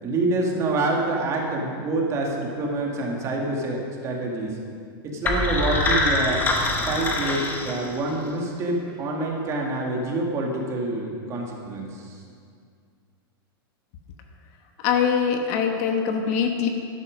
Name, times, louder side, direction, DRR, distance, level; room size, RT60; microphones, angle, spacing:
voice 1, 0.0-4.6 5.0-6.4 6.9-12.2, right 2 dB, 25° right, -1 dB, 2.0 m, -27 dB
sound 1, 5.2-8.3, left 2 dB, 15° left, 1.2 m, -24 dB
voice 2, 14.8-16.7, left 7 dB, 40° left, 4 dB, 1.1 m, -23 dB
12.5 x 11.5 x 5.1 m, 2.2 s
supercardioid pair, 155°, 13 cm